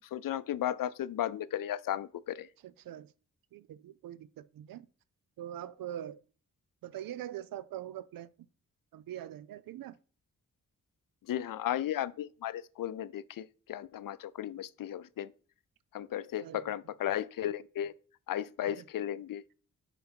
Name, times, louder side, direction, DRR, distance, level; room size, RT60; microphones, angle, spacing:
voice 1, 0.1-2.5 11.3-15.3 15.9-17.9 18.3-19.4, left 11 dB, 75° left, 0.5 m, -35 dB
voice 2, 2.6-3.1 3.5-4.9 5.4-6.2 6.8-8.3 8.9-10.0 16.4-16.8 18.6-18.8, right 11 dB, 85° right, 0.5 m, -43 dB
5.7 x 5.3 x 4.4 m
cardioid pair, 45°, 34 cm